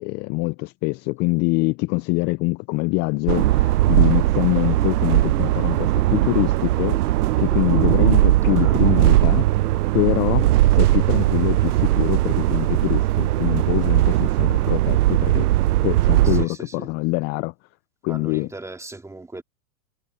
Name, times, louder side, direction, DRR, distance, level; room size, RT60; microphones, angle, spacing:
voice 1, 0.0-7.0 7.4-9.6 9.9-15.5 15.8-17.5 18.0-18.5, left 25 dB, 25° left, 0.4 m, -24 dB
sound 1, 3.3-16.5, right 15 dB, 70° right, 0.6 m, -19 dB
voice 2, 8.4-8.8 16.2-16.9 18.1-19.4, right 2 dB, 5° right, 2.2 m, -39 dB
hypercardioid pair, 115°, 48 cm